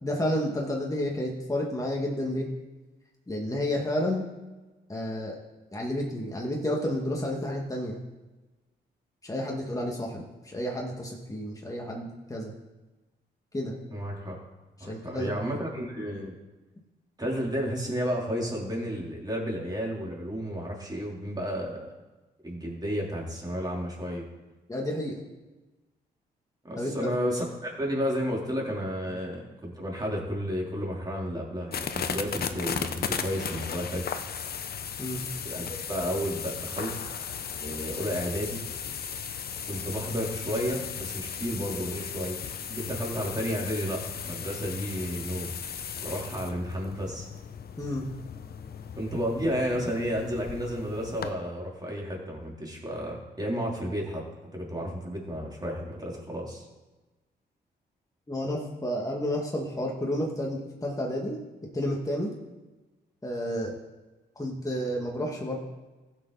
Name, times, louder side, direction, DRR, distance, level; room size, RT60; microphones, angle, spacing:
voice 1, 0.0-2.5 3.3-4.2 4.9-5.4 5.7-8.0 9.2-12.5 13.5-13.8 14.8-15.3 24.7-25.2 26.8-27.1 29.1-29.2 35.0-35.2 47.8-48.1 58.3-61.4 61.7-62.3 63.2-63.7 64.4-65.6, left 1 dB, 20° left, -2 dB, 2.1 m, -31 dB
voice 2, 13.9-14.4 14.8-16.3 17.2-21.9 22.4-24.3 26.6-34.1 35.4-36.9 37.6-38.6 39.6-42.4 42.7-45.5 46.0-47.3 49.0-54.2 54.5-56.7, equal, 20° right, -3 dB, 3.8 m, -32 dB
sound 1, 31.7-51.3, left 7 dB, 60° left, 0.9 m, -36 dB
15.5 x 6.8 x 4.2 m, 1.2 s
cardioid pair, 70°, 18 cm